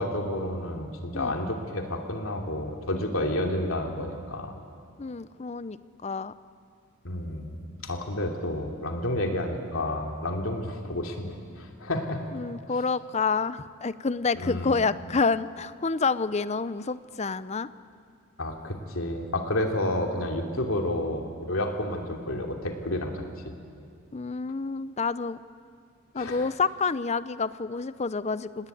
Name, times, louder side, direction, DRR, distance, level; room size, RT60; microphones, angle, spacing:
voice 1, 0.0-4.5 7.0-7.6 7.8-12.2 14.3-14.8 18.4-23.5 26.1-26.5, left 1 dB, 65° left, 2 dB, 3.0 m, -30 dB
voice 2, 5.0-5.8 6.0-6.3 12.3-17.7 24.1-25.4 26.1-28.7, left 4 dB, 30° left, 15 dB, 0.6 m, -28 dB
27.0 x 19.0 x 9.3 m, 2.4 s
head